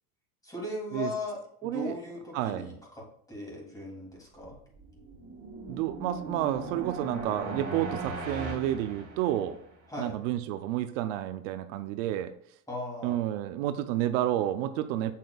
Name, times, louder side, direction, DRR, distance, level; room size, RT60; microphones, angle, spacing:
voice 1, 0.4-3.0 3.3-4.6 9.9-10.1 12.7-13.2, left 2 dB, 10° left, -3 dB, 2.9 m, -38 dB
voice 2, 1.6-2.0 2.3-2.8 5.7-9.6 10.0-12.3 13.0-15.1, right 12 dB, 70° right, 10 dB, 0.6 m, -30 dB
sound 1, 4.7-9.8, right 3 dB, 35° right, 3.2 m, -38 dB
7.4 x 7.4 x 2.4 m, 0.64 s
supercardioid pair, 125°, 40 cm